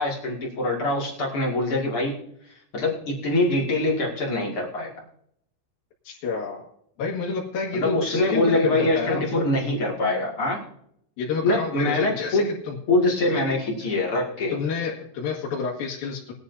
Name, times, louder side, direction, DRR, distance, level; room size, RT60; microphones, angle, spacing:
voice 1, 0.0-2.2 2.5-4.9 7.7-10.6 11.4-12.5 12.9-14.5, left 2 dB, 45° left, -2 dB, 1.9 m, -24 dB
voice 2, 6.0-6.7 7.0-9.3 11.2-12.8 14.5-16.3, left 5 dB, 60° left, -4 dB, 2.9 m, -29 dB
20.5 x 9.8 x 2.7 m, 0.71 s
omnidirectional pair, 5.6 m